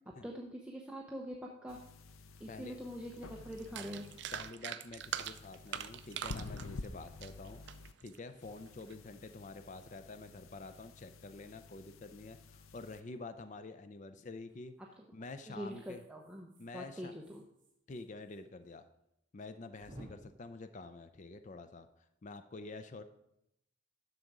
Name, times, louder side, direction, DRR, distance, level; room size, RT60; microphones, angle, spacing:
voice 1, 0.2-1.8 2.4-4.2 15.5-17.4, equal, 5° right, -1 dB, 0.7 m, -44 dB
sound 1, 1.7-4.5 5.0-7.9 8.4-13.0, left 3 dB, 85° left, 0.6 m, -50 dB
voice 2, 2.5-2.8 4.3-7.6 8.0-14.8 15.1-16.0 16.6-17.1 17.9-18.8 19.3-21.9 22.2-23.0, left 3 dB, 35° left, 10 dB, 0.5 m, -48 dB
sound 2, 3.1-3.3 4.2-4.4 4.8-5.0 5.3-5.4 6.2-7.2 7.7-10.0 10.5-11.3 12.9-13.2 14.5-14.8 15.6-18.4 18.7-18.8 19.0-19.1 19.8-20.1, right 1 dB, 25° right, 3.0 m, -60 dB
sound 3, 3.1-3.2 3.5-8.2 8.7-8.9, right 9 dB, 55° right, 0.5 m, -42 dB
11.0 x 6.6 x 4.8 m, 0.81 s
head